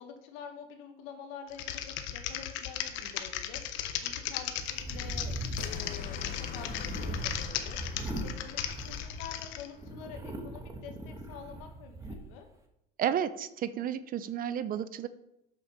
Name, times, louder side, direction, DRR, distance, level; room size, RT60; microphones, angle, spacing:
voice 1, 0.0-5.3 5.6-12.5, left 7 dB, 90° left, 5 dB, 1.8 m, -47 dB
Typing, 1.5-9.7, left 10 dB, 70° left, 1.1 m, -37 dB
sound 1, 4.6-9.4 9.8-12.2, right 1 dB, 15° right, 1.5 m, -40 dB
sound 2, 5.6-9.8, left 7 dB, 45° left, 1.0 m, -43 dB
voice 2, 13.0-15.1, right 9 dB, 45° right, 14 dB, 0.7 m, -32 dB
8.4 x 6.1 x 6.7 m, 0.84 s
cardioid pair, 125°, 20 cm